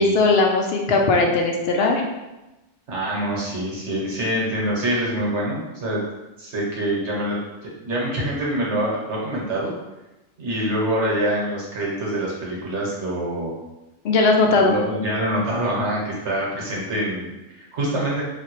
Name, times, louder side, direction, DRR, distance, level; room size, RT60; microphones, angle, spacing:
voice 1, 0.0-2.0 14.0-14.8, left 3 dB, 65° left, 1 dB, 0.7 m, -18 dB
voice 2, 2.9-6.0 6.4-9.7 10.4-13.6 14.5-18.2, right 1 dB, 85° right, -4 dB, 1.3 m, -25 dB
3.3 x 2.7 x 3.0 m, 1.0 s
omnidirectional pair, 1.2 m